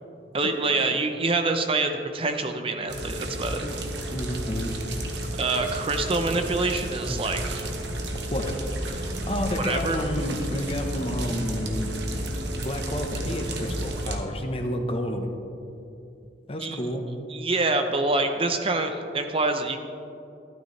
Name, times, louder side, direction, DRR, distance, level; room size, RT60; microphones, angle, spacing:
voice 1, 0.3-3.6 5.4-7.7 9.6-10.0 16.6-16.8 17.3-19.8, right 3 dB, 30° right, 6 dB, 0.6 m, -26 dB
sound 1, 2.9-14.2, right 1 dB, 75° right, 1.2 m, -32 dB
voice 2, 4.1-4.8 7.1-7.2 8.3-8.5 8.8-12.4 12.6-15.3 16.5-17.1, left 1 dB, 35° left, 4 dB, 1.0 m, -31 dB
12.5 x 12.5 x 3.3 m, 2.7 s
head